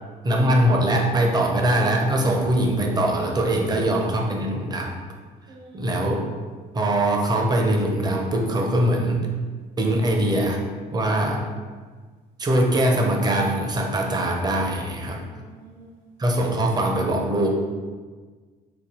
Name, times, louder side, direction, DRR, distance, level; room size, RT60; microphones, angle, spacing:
voice 1, 0.2-5.0 5.7-6.2 6.7-9.3 9.8-10.6 10.9-11.4 12.4-15.2 16.2-17.5, right 1 dB, 25° right, 1 dB, 0.7 m, -22 dB
voice 2, 3.6-4.0 5.5-6.1 15.2-16.0, right 1 dB, 90° right, -5 dB, 1.3 m, -46 dB
4.3 x 2.6 x 4.3 m, 1.5 s
cardioid pair, 110°, 17 cm